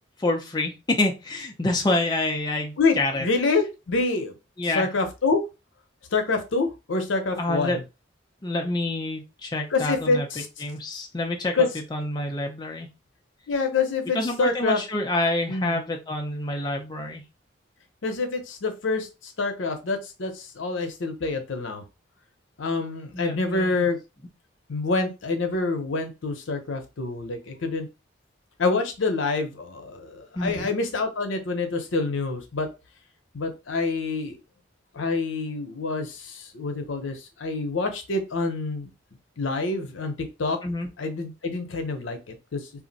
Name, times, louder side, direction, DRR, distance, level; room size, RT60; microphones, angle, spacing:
voice 1, 0.2-3.3 4.6-4.9 7.4-7.8 8.4-10.3 10.6-12.9 14.1-17.2 23.1-23.7 30.4-30.7 40.6-40.9, left 2 dB, 20° left, 2 dB, 0.4 m, -27 dB
voice 2, 2.8-4.3 4.7-5.4 6.1-7.8 9.7-10.5 11.5-11.7 13.5-14.8 15.5-15.8 18.0-21.8 22.6-24.0 24.7-27.9 28.6-32.7 33.3-34.4 34.9-38.9 39.4-40.1 40.4-40.6 41.0-42.6, left 3 dB, 85° left, 5 dB, 0.7 m, -26 dB
2.5 x 2.0 x 3.9 m, 0.27 s
head